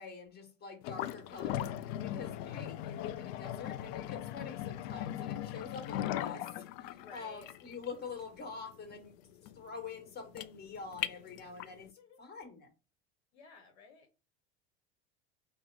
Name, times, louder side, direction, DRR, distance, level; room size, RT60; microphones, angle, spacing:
voice 1, 0.0-11.9 12.2-12.7, left 5 dB, 30° left, 1.4 m, -46 dB
sound 1, 0.8-11.8, left 12 dB, 60° left, 0.4 m, -39 dB
voice 2, 6.9-7.5 11.5-12.2 13.3-14.1, left 4 dB, 75° left, 1.0 m, -56 dB
4.7 x 2.1 x 4.5 m
hypercardioid pair, 85°, 32 cm